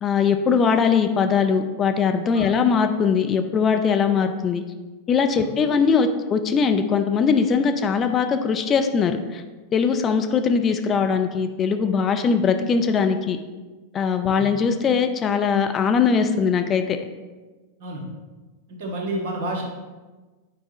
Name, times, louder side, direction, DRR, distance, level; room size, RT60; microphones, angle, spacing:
voice 1, 0.0-4.6 5.1-9.4 9.7-13.4 13.9-17.0, left 6 dB, 25° left, 6 dB, 0.4 m, -21 dB
voice 2, 18.7-19.6, right 1 dB, 50° right, 0 dB, 1.5 m, -30 dB
8.6 x 4.8 x 3.0 m, 1.3 s
figure-of-eight pair, 90°, 0 cm